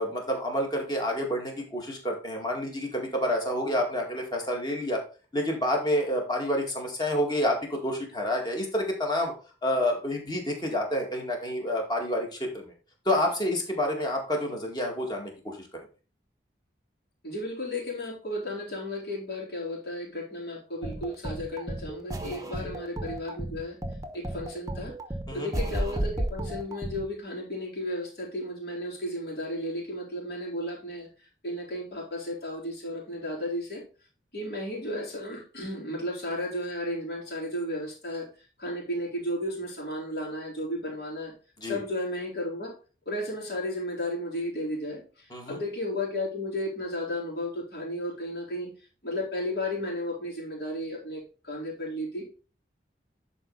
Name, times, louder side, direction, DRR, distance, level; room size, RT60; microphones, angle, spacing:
voice 1, 0.0-5.0 5.3-9.3 9.6-12.7 13.1-15.6 22.6-22.7 25.3-25.5 41.6-41.8 45.3-45.6, left 1 dB, 25° left, 1 dB, 2.1 m, -28 dB
voice 2, 17.2-23.8 24.1-24.9 25.3-31.1 31.4-33.8 34.3-38.3 38.6-41.3 41.6-42.7 43.1-48.7 49.0-52.3, left 1 dB, 60° left, -3 dB, 4.0 m, -34 dB
sound 1, 20.8-27.0, right 1 dB, 20° right, 0.8 m, -33 dB
11.0 x 4.4 x 4.0 m, 0.35 s
head